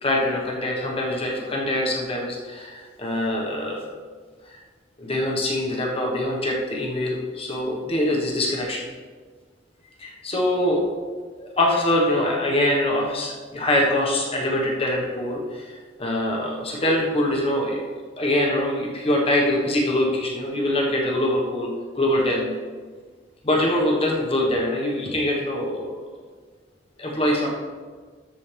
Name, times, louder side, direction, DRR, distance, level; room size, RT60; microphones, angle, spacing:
voice 1, 0.0-3.9 5.0-8.9 10.0-10.9 11.3-17.9 18.2-22.5 23.4-26.0 27.0-27.5, left 1 dB, 35° left, -2 dB, 1.4 m, -24 dB
13.5 x 6.2 x 3.4 m, 1.5 s
head